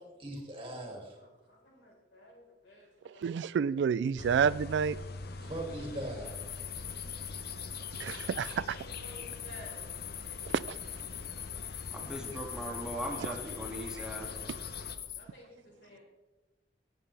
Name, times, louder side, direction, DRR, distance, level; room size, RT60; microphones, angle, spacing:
voice 1, 0.2-1.0 5.4-6.4 15.1-15.2, right 1 dB, 30° right, 2.6 m, -40 dB
voice 2, 1.2-3.7 8.5-9.9 15.1-16.0, equal, 80° left, 4.6 m, -54 dB
voice 3, 3.2-5.0 8.0-8.8 10.5-10.8 14.0-14.1, right 7 dB, 75° right, 0.3 m, -29 dB
sound 1, 4.2-15.0, left 2 dB, 60° left, 0.8 m, -44 dB
sound 2, 6.2-15.2, left 11 dB, 35° left, 0.4 m, -43 dB
voice 4, 11.9-14.3, equal, 5° right, 1.9 m, -39 dB
19.5 x 7.7 x 3.4 m
head